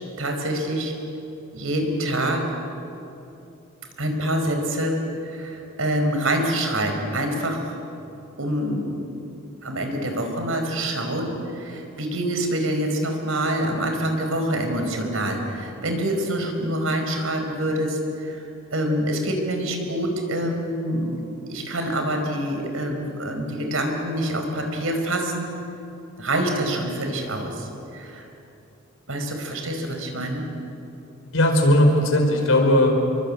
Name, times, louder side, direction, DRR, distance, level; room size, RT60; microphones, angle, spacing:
voice 1, 0.2-0.9 1.5-2.4 4.0-7.7 8.4-9.0 9.6-18.4 18.7-21.2 21.5-25.5 26.2-28.3 29.1-30.5, right 1 dB, 80° right, 4 dB, 5.0 m, -26 dB
voice 2, 31.3-32.9, left 1 dB, 85° left, 3 dB, 5.3 m, -17 dB
29.0 x 23.5 x 8.7 m, 2.8 s
head